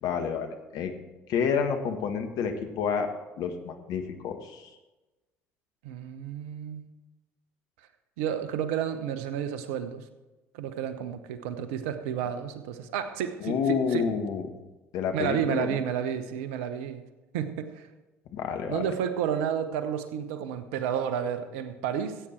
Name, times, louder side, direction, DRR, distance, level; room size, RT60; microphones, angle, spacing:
voice 1, 0.0-0.9 1.3-3.1 3.4-4.7 13.4-14.5 14.9-15.8 18.3-18.9, left 6 dB, 60° left, 6 dB, 1.5 m, -29 dB
voice 2, 5.8-6.9 8.2-10.0 10.5-14.0 15.1-17.0 17.3-17.9 18.7-22.2, right 8 dB, 75° right, 10 dB, 1.0 m, -31 dB
14.5 x 8.9 x 4.4 m, 1.1 s
hypercardioid pair, 60°, 7 cm